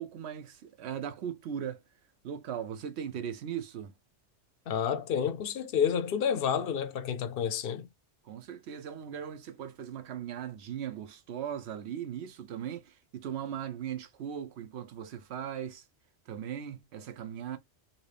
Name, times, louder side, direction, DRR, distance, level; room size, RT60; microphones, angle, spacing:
voice 1, 0.0-1.8 2.2-3.9 7.3-7.4 8.2-15.8 16.3-17.6, right 9 dB, 70° right, 0.9 m, -38 dB
voice 2, 4.7-7.9, left 8 dB, 60° left, 0.7 m, -29 dB
3.0 x 2.8 x 3.2 m
omnidirectional pair, 1.2 m